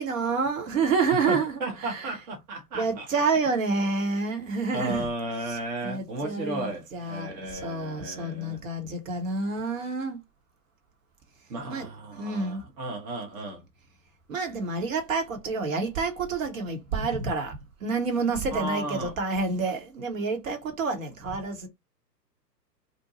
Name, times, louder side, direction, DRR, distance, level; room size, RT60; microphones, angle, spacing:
voice 1, 0.0-2.1 2.7-5.1 5.5-5.6 5.8-10.2 11.7-12.6 14.3-21.7, right 4 dB, 50° right, 1.0 m, -28 dB
voice 2, 1.3-3.1 4.7-8.6 11.5-13.6 18.5-19.1, right 2 dB, 25° right, 0.6 m, -34 dB
2.6 x 2.1 x 2.8 m
figure-of-eight pair, 115°, 50 cm